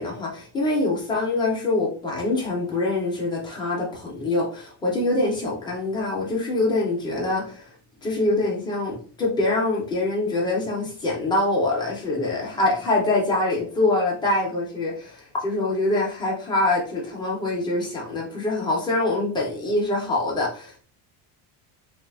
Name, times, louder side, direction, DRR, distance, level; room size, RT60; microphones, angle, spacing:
voice 1, 0.0-7.7 8.0-20.8, left 2 dB, 10° left, -3 dB, 0.4 m, -24 dB
3.5 x 2.4 x 2.2 m, 0.41 s
cardioid pair, 175°, 45 cm